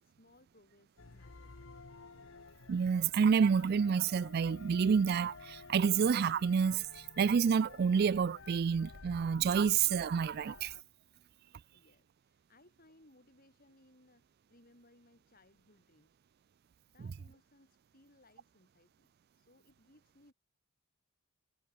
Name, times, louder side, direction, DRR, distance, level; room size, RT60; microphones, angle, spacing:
voice 1, 0.0-2.0 11.7-16.2 16.9-20.3, left 1 dB, 40° left, 5.2 m, -65 dB
sound 1, 1.0-10.8, left 4 dB, 60° left, 1.1 m, -53 dB
voice 2, 2.7-10.7, right 6 dB, 45° right, 0.3 m, -29 dB
head